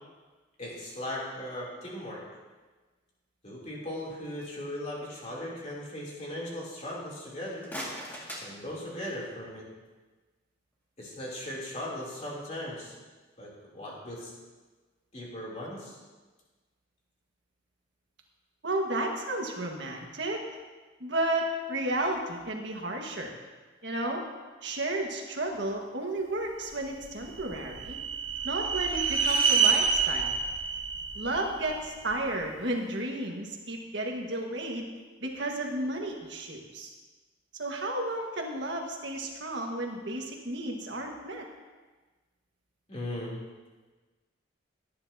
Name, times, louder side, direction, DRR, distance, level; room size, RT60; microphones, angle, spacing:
voice 1, 0.6-2.2 3.4-7.7 8.4-9.6 11.0-12.9 13.4-14.3 15.1-16.0 42.9-43.4, left 1 dB, 35° left, -4 dB, 3.2 m, -38 dB
sound 1, 7.4-9.4, equal, 10° left, 2.2 m, -41 dB
voice 2, 18.6-20.4 21.0-23.3 23.8-24.2 24.6-28.0 28.4-30.4 31.1-34.8 35.2-36.9 37.6-41.4, right 1 dB, 60° right, 1 dB, 1.7 m, -32 dB
sound 2, 27.0-32.2, right 5 dB, 90° right, 1.7 m, -28 dB
18.0 x 10.0 x 2.9 m, 1.3 s
head